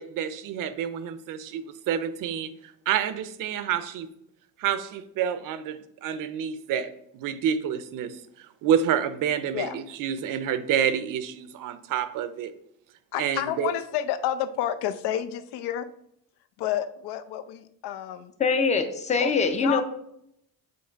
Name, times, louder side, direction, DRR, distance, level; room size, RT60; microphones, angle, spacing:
voice 1, 0.0-2.5 2.9-4.1 4.6-8.2 8.6-12.5 13.2-13.7, right 9 dB, 55° right, 0.5 m, -28 dB
voice 2, 13.1-15.9 16.6-18.3 19.2-19.3 19.6-19.8, left 11 dB, 90° left, 0.6 m, -30 dB
voice 3, 18.4-19.8, left 4 dB, 20° left, 0.4 m, -23 dB
7.8 x 3.2 x 4.5 m
cardioid pair, 180°, 38 cm